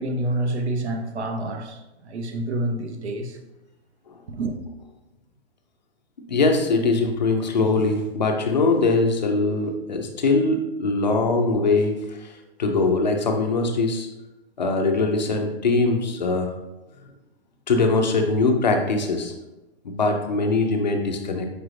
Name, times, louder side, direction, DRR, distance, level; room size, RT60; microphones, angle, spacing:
voice 1, 0.0-3.4 4.3-4.5, right 1 dB, 90° right, 0.8 m, -28 dB
voice 2, 6.3-12.0 12.6-14.1 14.6-16.5 17.7-19.3 19.8-21.5, left 3 dB, 45° left, 0.4 m, -22 dB
4.8 x 2.5 x 3.1 m
hypercardioid pair, 180°, 32 cm